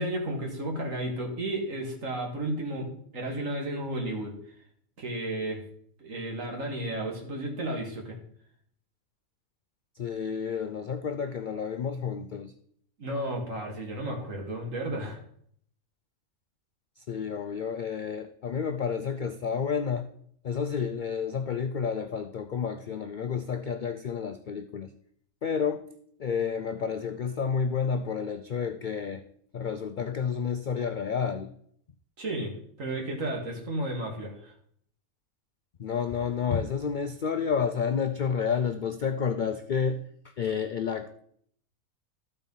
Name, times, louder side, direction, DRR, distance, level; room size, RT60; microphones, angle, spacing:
voice 1, 0.0-2.9 3.1-4.3 5.0-5.6 6.0-8.2 13.0-15.2 32.2-34.5, right 1 dB, 70° right, 1 dB, 2.3 m, -33 dB
voice 2, 10.0-12.5 17.0-20.1 20.4-24.9 25.4-25.8 26.2-29.2 29.5-31.5 35.8-41.2, left 6 dB, 70° left, 8 dB, 0.4 m, -30 dB
13.0 x 4.4 x 5.4 m, 0.65 s
omnidirectional pair, 1.4 m